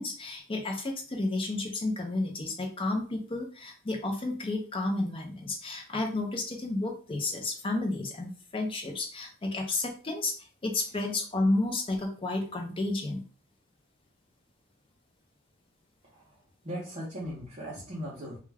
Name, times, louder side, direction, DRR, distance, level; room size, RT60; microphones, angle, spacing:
voice 1, 0.0-10.3 10.6-13.2, left 2 dB, 25° left, 3 dB, 0.4 m, -31 dB
voice 2, 16.0-16.4 16.6-18.4, equal, 35° right, -6 dB, 0.7 m, -38 dB
2.2 x 2.2 x 3.2 m, 0.40 s
head